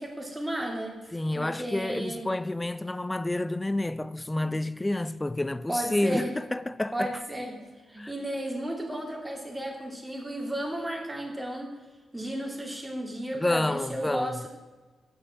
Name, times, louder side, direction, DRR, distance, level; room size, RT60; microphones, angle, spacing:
voice 1, 0.0-1.0 1.3-2.3 5.7-6.3 6.9-7.6 7.9-11.7 12.1-14.5, right 1 dB, 10° right, 2.6 m, -34 dB
voice 2, 1.1-7.1 8.0-8.1 13.4-14.5, left 1 dB, 15° left, 0.4 m, -29 dB
8.8 x 6.3 x 7.5 m
supercardioid pair, 55°, 0 cm